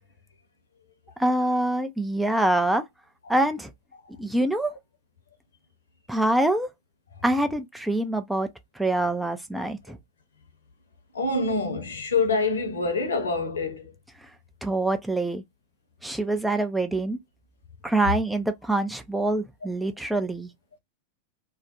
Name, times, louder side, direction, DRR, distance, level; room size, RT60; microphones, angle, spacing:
voice 1, 1.2-2.8 3.3-3.7 4.2-4.7 6.1-6.7 7.2-8.5 8.8-10.0 14.6-15.4 16.0-17.2 17.8-20.5, right 1 dB, 5° right, 0.3 m, -25 dB
voice 2, 11.1-13.9, left 3 dB, 70° left, 0.8 m, -26 dB
2.3 x 2.1 x 2.7 m
figure-of-eight pair, 90°, 0 cm